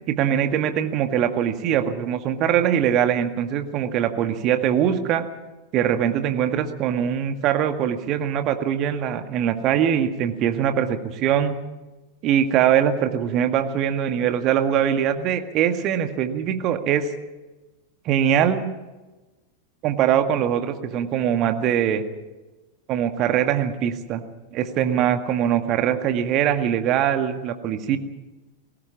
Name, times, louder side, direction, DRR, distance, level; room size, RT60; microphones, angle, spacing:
voice 1, 0.1-5.2 5.7-11.6 12.2-17.1 18.1-18.7 19.8-22.0 22.9-24.2 24.5-28.0, right 9 dB, 35° right, 7 dB, 1.9 m, -22 dB
21.5 x 18.0 x 7.3 m, 1.1 s
figure-of-eight pair, 90°, 0 cm